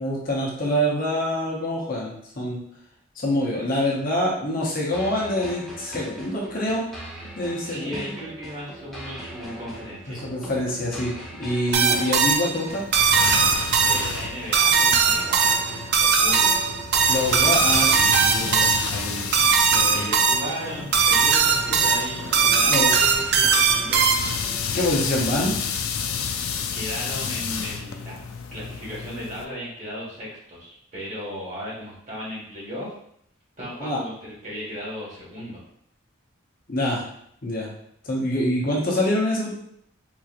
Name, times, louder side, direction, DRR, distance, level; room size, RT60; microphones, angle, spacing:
voice 1, 0.0-2.6 3.2-6.9 7.3-8.0 10.1-12.8 17.1-19.3 19.7-20.1 22.7-22.9 24.7-25.6 33.8-34.0 36.7-37.0 37.4-37.7 38.0-39.5, left 1 dB, 40° left, -3 dB, 0.7 m, -26 dB
sound 1, 4.9-24.9, right 1 dB, ahead, 0.5 m, -40 dB
voice 2, 7.6-10.2 13.8-16.6 18.4-18.9 19.9-24.1 26.7-28.2 28.5-32.9 33.6-35.6, equal, 35° right, -6 dB, 1.4 m, -36 dB
sound 2, 11.7-24.5, right 5 dB, 50° right, 0.4 m, -20 dB
sound 3, 12.7-29.5, left 6 dB, 80° left, 0.4 m, -32 dB
3.8 x 3.0 x 2.4 m, 0.70 s
head